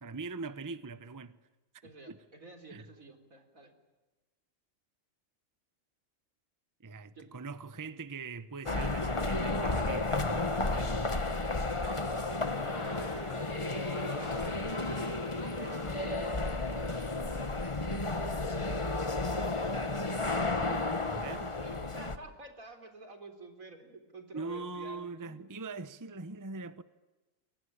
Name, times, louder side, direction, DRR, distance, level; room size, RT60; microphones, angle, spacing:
voice 1, 0.0-1.4 2.1-2.2 2.7-2.9 6.8-11.1 11.8-11.9 20.2-21.6 24.3-26.8, right 3 dB, 15° right, 0.8 m, -42 dB
voice 2, 1.8-3.7 7.2-7.3 12.2-13.3 13.6-16.8 21.5-25.4, right 2 dB, 75° right, 4.2 m, -51 dB
sound 1, 8.7-22.2, left 2 dB, 25° left, 1.4 m, -32 dB
Crowd, 12.2-17.0, left 1 dB, 45° left, 5.8 m, -47 dB
sound 2, 14.8-20.4, left 1 dB, 60° left, 5.6 m, -57 dB
29.0 x 23.0 x 8.7 m
omnidirectional pair, 1.4 m